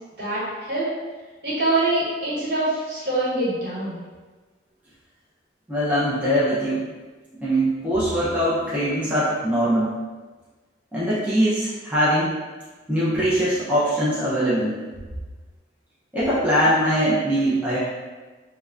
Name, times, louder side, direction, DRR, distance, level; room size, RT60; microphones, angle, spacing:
voice 1, 1.4-4.0, right 2 dB, 60° right, -9 dB, 1.2 m, -24 dB
voice 2, 5.7-6.9 7.4-9.9 10.9-12.4 12.9-14.8 16.1-17.8, equal, 10° right, -10 dB, 0.4 m, -22 dB
3.5 x 2.1 x 2.4 m, 1.3 s
head